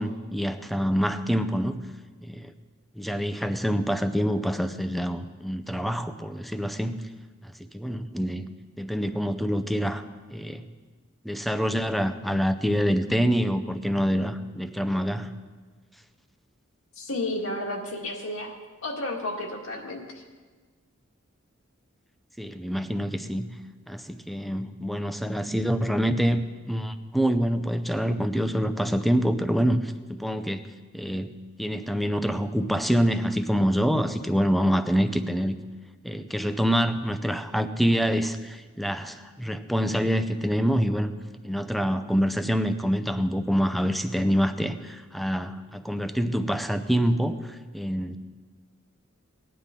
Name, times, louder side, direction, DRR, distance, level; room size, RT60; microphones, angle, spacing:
voice 1, 0.0-1.8 2.2-2.5 3.0-7.0 7.7-8.4 8.8-10.0 10.3-10.6 11.2-15.3 22.4-23.5 23.9-30.6 30.9-31.3 31.6-35.5 36.0-41.1 41.4-47.4 47.7-48.2, equal, ahead, 9 dB, 0.5 m, -26 dB
voice 2, 17.0-18.5 18.8-20.2, left 2 dB, 80° left, 0 dB, 1.9 m, -32 dB
18.5 x 10.0 x 3.7 m, 1.4 s
head